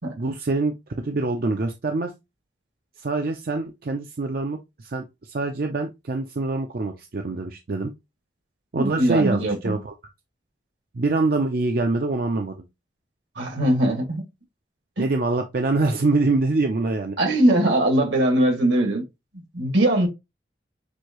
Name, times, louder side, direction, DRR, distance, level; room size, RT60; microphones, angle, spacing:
voice 1, 0.2-2.1 3.0-7.9 8.7-9.9 10.9-12.7 15.0-17.2, right 3 dB, 55° right, 0.5 m, -25 dB
voice 2, 8.8-9.8 13.4-14.2 15.0-15.1 17.2-19.0 19.5-20.1, right 1 dB, 80° right, 2.1 m, -21 dB
6.1 x 2.7 x 3.0 m
head